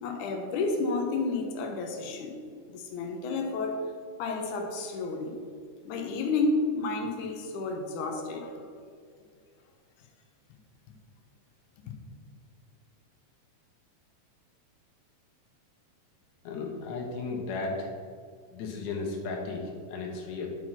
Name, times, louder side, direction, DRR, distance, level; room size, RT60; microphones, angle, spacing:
voice 1, 0.0-2.4 2.7-3.9 4.2-5.4 5.9-8.6, left 3 dB, 90° left, 3 dB, 2.4 m, -31 dB
voice 2, 16.4-17.9 18.5-20.5, left 3 dB, 70° left, 0 dB, 2.4 m, -35 dB
11.0 x 4.6 x 5.7 m, 2.1 s
omnidirectional pair, 3.4 m